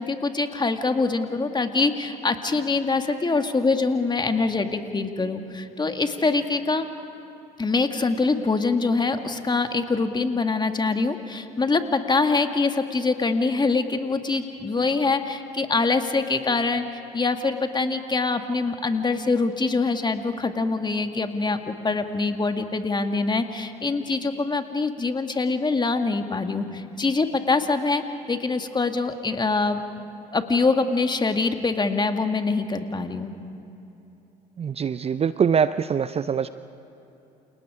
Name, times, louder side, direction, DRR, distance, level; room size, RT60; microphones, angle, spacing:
voice 1, 0.0-6.9 7.6-28.0 28.3-29.8 30.3-33.3, left 3 dB, 20° left, 6 dB, 2.0 m, -24 dB
voice 2, 34.6-36.5, right 7 dB, 30° right, 14 dB, 0.6 m, -23 dB
29.0 x 29.0 x 5.0 m, 2.9 s
hypercardioid pair, 60°, 21 cm